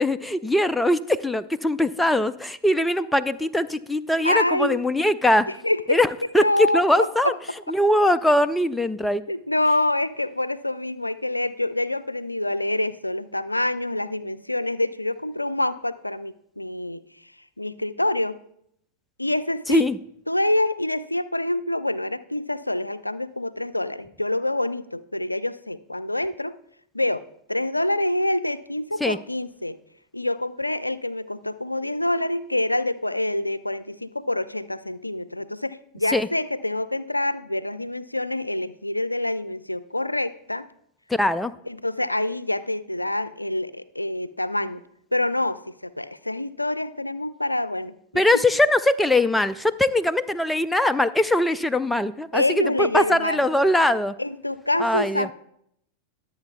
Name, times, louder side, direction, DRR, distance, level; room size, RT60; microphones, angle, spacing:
voice 1, 0.0-5.5 5.9-6.1 6.3-7.3 7.7-9.2 19.7-20.0 29.0-29.2 36.1-36.3 41.1-41.5 48.1-52.4 52.8-54.1 54.8-55.3, left 1 dB, 5° left, 13 dB, 0.4 m, -21 dB
voice 2, 4.2-4.8 5.5-6.0 6.4-7.3 9.3-17.0 17.6-18.4 19.2-19.8 20.3-26.5 26.9-27.2 27.5-29.8 30.1-40.7 41.7-44.8 45.1-48.4 52.3-53.4 54.2-55.3, left 1 dB, 85° left, 15 dB, 0.4 m, -26 dB
21.5 x 7.8 x 2.3 m, 0.73 s
figure-of-eight pair, 90°, 0 cm